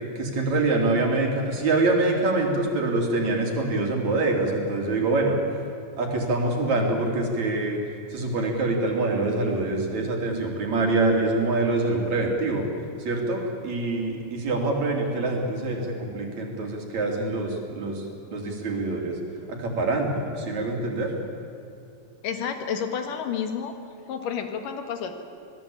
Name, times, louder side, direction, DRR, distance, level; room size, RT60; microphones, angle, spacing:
voice 1, 0.2-5.4 6.0-7.8 8.1-12.7 13.0-18.0 18.3-19.2 19.5-21.1, right 2 dB, 60° right, 1 dB, 4.5 m, -25 dB
voice 2, 22.2-23.7 24.1-25.1, left 7 dB, 85° left, 6 dB, 3.4 m, -30 dB
27.0 x 19.0 x 8.8 m, 2.6 s
omnidirectional pair, 3.7 m